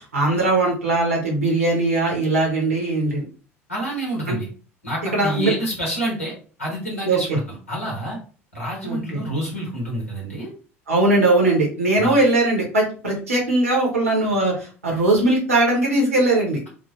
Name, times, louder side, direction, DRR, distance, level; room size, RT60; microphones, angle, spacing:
voice 1, 0.0-3.2 4.3-4.4 5.1-5.5 7.0-7.4 8.8-9.2 10.9-16.6, right 2 dB, 80° right, -1 dB, 1.2 m, -20 dB
voice 2, 3.7-4.5 4.8-6.3 6.6-8.2 8.5-10.5 12.0-12.1, right 1 dB, 85° left, -3 dB, 1.1 m, -28 dB
4.0 x 2.2 x 3.0 m, 0.39 s
figure-of-eight pair, 70°, 7 cm